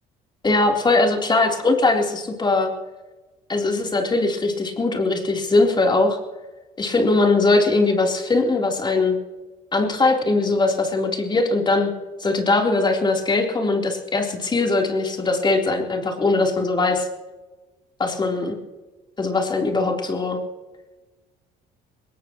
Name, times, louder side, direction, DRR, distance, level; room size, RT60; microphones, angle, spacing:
voice 1, 0.4-2.7 3.5-6.2 6.8-9.2 9.7-11.9 12.2-17.1 18.0-18.6 19.2-20.4, left 3 dB, 25° left, 1 dB, 3.6 m, -20 dB
21.5 x 19.0 x 3.1 m, 1.1 s
cardioid pair, 110°, 17 cm